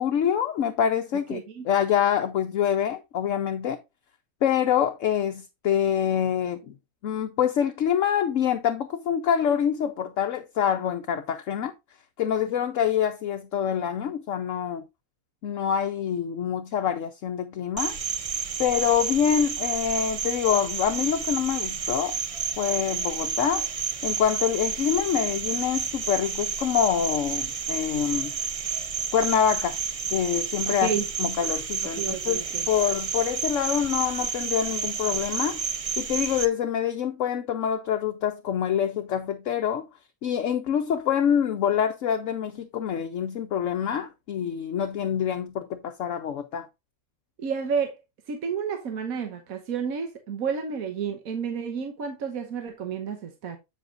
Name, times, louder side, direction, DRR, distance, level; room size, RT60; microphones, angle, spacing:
voice 1, 0.0-3.8 4.4-6.7 7.0-11.7 12.2-14.8 15.4-18.0 18.6-22.2 22.6-23.7 24.0-28.3 29.1-29.8 30.1-35.6 36.0-39.9 40.2-46.7, left 9 dB, 65° left, 1.0 m, -26 dB
voice 2, 1.3-1.7 30.6-31.1 31.4-31.5 31.9-32.7 47.4-48.0 48.3-53.6, right 6 dB, 75° right, 1.5 m, -31 dB
Cricket, 17.8-36.5, right 6 dB, 55° right, 0.4 m, -30 dB
8.0 x 7.8 x 2.5 m
omnidirectional pair, 1.5 m